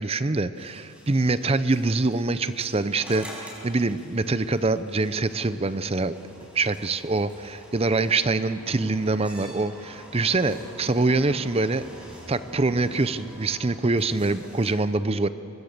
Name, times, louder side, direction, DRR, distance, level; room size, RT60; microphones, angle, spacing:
voice 1, 0.0-6.1 6.5-11.8 12.3-15.3, right 3 dB, 30° right, 13 dB, 0.6 m, -24 dB
sound 1, 0.5-14.7, equal, 5° right, 5.2 m, -46 dB
25.0 x 20.5 x 6.8 m, 2.8 s
head